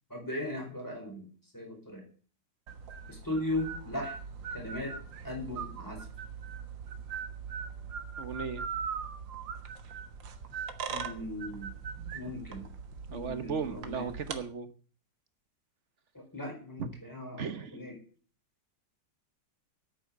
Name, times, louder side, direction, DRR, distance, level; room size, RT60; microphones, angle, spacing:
voice 1, 0.1-1.3 1.5-2.0 3.1-4.1 4.5-4.9 5.2-6.0 10.9-11.7 12.1-12.7 13.1-14.1 16.3-17.9, left 1 dB, 10° left, 1 dB, 4.6 m, -37 dB
sound 1, 2.7-14.4, right 6 dB, 85° right, 2.1 m, -41 dB
voice 2, 8.2-8.6 13.1-14.7 16.8-16.9 17.4-17.8, right 6 dB, 45° right, 11 dB, 1.2 m, -36 dB
9.8 x 8.9 x 8.6 m, 0.42 s
omnidirectional pair, 2.0 m